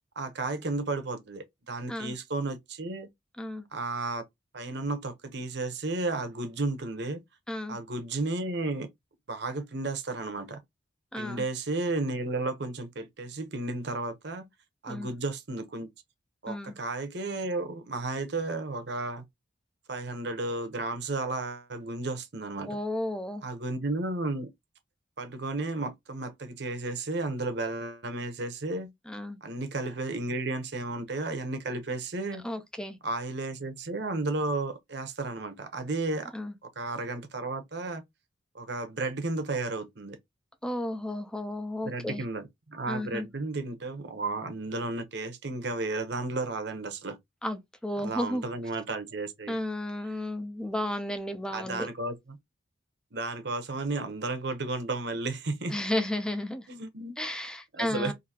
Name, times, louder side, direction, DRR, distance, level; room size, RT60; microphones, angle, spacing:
voice 1, 0.2-3.1 3.7-4.2 4.5-7.2 7.7-8.9 9.3-10.6 11.2-14.5 14.8-15.9 16.4-19.2 19.9-22.8 23.4-24.5 25.2-28.9 29.4-32.4 33.0-36.3 36.8-38.0 38.5-40.2 41.8-47.2 48.0-49.6 51.5-52.4 53.1-55.8 56.7-57.1 57.7-58.1, right 2 dB, 60° right, 0.9 m, -33 dB
voice 2, 7.5-7.8 11.1-11.4 14.9-15.1 16.5-16.8 22.7-23.4 29.1-29.4 32.4-33.0 36.3-36.5 40.6-42.2 42.9-43.3 47.4-48.4 49.5-51.9 55.7-56.6 57.2-58.1, left 1 dB, 5° left, 0.5 m, -33 dB
3.9 x 2.7 x 2.8 m
head